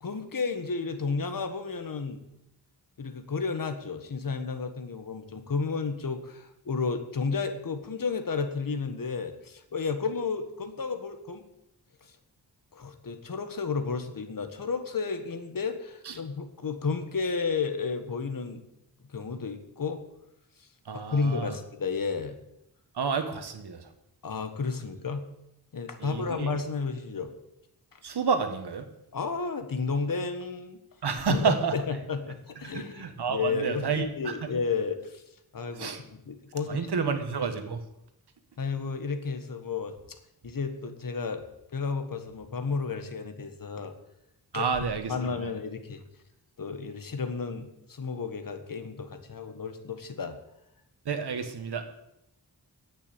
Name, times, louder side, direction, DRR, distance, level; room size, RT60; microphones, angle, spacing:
voice 1, 0.0-2.2 3.0-11.4 12.0-12.1 12.7-18.6 19.1-20.0 20.9-22.4 24.2-25.2 25.7-27.3 27.9-28.0 29.1-30.8 31.3-35.2 35.5-37.1 38.6-39.9 40.4-41.4 41.7-43.9 44.5-46.0 46.6-50.4, left 4 dB, 60° left, 7 dB, 1.6 m, -32 dB
voice 2, 20.9-21.6 22.9-23.8 26.0-26.5 28.0-28.8 31.0-31.7 32.6-34.5 35.8-36.0 36.7-37.8 44.5-45.1 51.0-51.8, right 5 dB, 85° right, 8 dB, 1.6 m, -30 dB
10.0 x 8.6 x 8.6 m, 0.82 s
wide cardioid pair, 115°, 38 cm